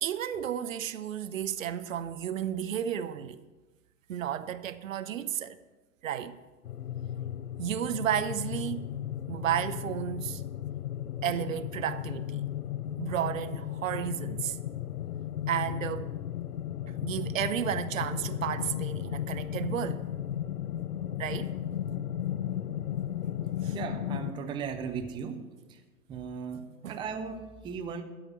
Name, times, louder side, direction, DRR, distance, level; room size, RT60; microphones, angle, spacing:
voice 1, 0.0-3.4 4.1-5.6 6.0-6.4 7.6-8.9 9.3-10.4 11.2-12.5 13.0-14.6 15.5-16.1 17.0-20.1 21.2-21.5 23.6-23.8 26.8-27.0, right 10 dB, 60° right, 0.7 m, -32 dB
sound 1, 6.6-24.3, left 11 dB, 85° left, 0.6 m, -35 dB
voice 2, 23.7-25.4 25.7-25.8 26.1-28.0, right 6 dB, 10° right, 0.6 m, -37 dB
12.5 x 5.0 x 8.4 m
figure-of-eight pair, 105°, 44 cm